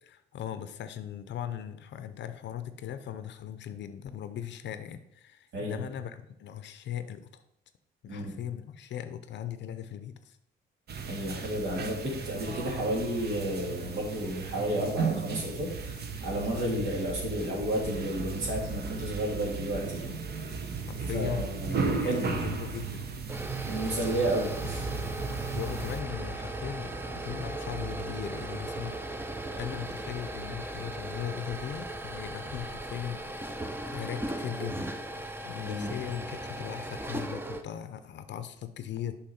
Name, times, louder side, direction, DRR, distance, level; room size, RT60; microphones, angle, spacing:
voice 1, 0.0-7.4 8.0-10.4 16.6-16.9 20.9-21.6 22.0-23.1 25.5-29.2 29.5-33.5 33.9-34.9 35.5-39.2, left 10 dB, 65° left, 11 dB, 0.6 m, -38 dB
voice 2, 5.5-5.8 8.1-8.3 11.0-20.1 21.1-22.3 23.7-24.9 35.6-35.9, right 1 dB, 75° right, -1 dB, 2.4 m, -32 dB
sound 1, 10.9-26.0, right 5 dB, 55° right, 1.0 m, -35 dB
sound 2, 23.2-37.6, right 1 dB, 10° right, 0.6 m, -37 dB
6.4 x 5.7 x 4.3 m, 0.78 s
cardioid pair, 90°, 20 cm